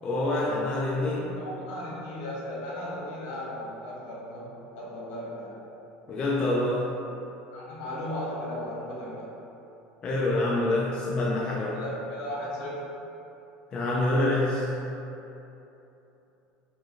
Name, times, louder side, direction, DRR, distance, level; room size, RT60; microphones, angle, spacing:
voice 1, 0.0-1.4 6.1-6.9 10.0-11.8 13.7-14.7, left 2 dB, 20° left, -4 dB, 0.3 m, -26 dB
voice 2, 1.3-4.5 4.7-5.6 7.5-9.3 11.7-12.8, left 1 dB, 65° left, -6 dB, 1.2 m, -36 dB
4.4 x 2.5 x 3.0 m, 3.0 s
cardioid pair, 170°, 4 cm